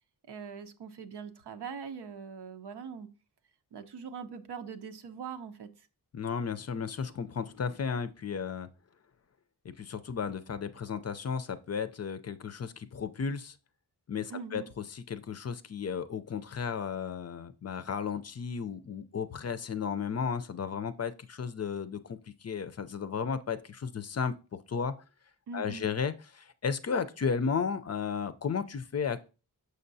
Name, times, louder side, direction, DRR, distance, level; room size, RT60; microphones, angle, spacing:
voice 1, 0.3-3.1 3.7-5.7 14.3-14.7 25.5-25.9, right 6 dB, 80° right, 0.7 m, -42 dB
voice 2, 6.1-8.7 9.6-13.6 14.1-14.6 14.9-24.4 24.7-24.9 25.5-29.3, left 6 dB, 40° left, 0.5 m, -34 dB
6.5 x 5.4 x 2.7 m
cardioid pair, 70°, 40 cm